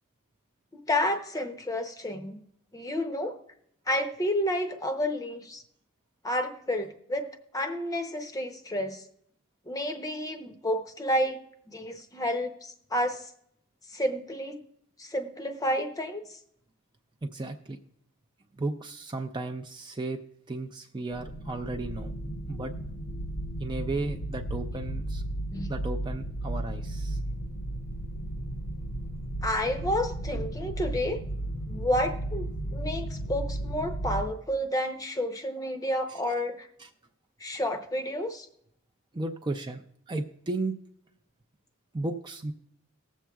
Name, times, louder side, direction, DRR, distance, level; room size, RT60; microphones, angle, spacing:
voice 1, 0.7-2.4 2.7-3.4 3.9-5.6 6.2-7.3 7.5-9.0 9.7-11.4 11.7-13.3 13.9-14.6 15.0-16.4 25.5-25.7 29.4-31.2 31.7-36.7 37.4-38.5, left 1 dB, 15° left, 6 dB, 0.7 m, -30 dB
voice 2, 17.2-17.8 18.6-20.2 20.5-22.1 22.5-22.7 23.6-25.2 25.7-27.2 36.8-36.9 39.1-40.7 41.9-42.5, right 2 dB, 20° right, 5 dB, 0.4 m, -34 dB
sound 1, 21.1-34.3, right 1 dB, 75° left, 0.8 m, -34 dB
19.5 x 7.3 x 2.3 m, 0.71 s
head